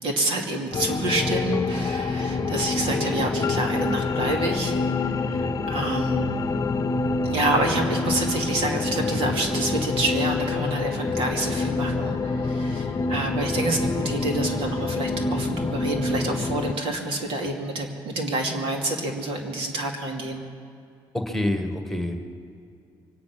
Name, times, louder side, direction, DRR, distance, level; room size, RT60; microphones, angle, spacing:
voice 1, 0.0-6.4 7.2-20.5, right 2 dB, 80° right, 1 dB, 2.5 m, -28 dB
sound 1, 0.7-16.7, left 3 dB, 40° left, 0.8 m, -26 dB
voice 2, 21.1-22.2, left 1 dB, 5° left, 4 dB, 1.8 m, -26 dB
24.5 x 9.6 x 6.0 m, 2.5 s
cardioid pair, 80°, 9 cm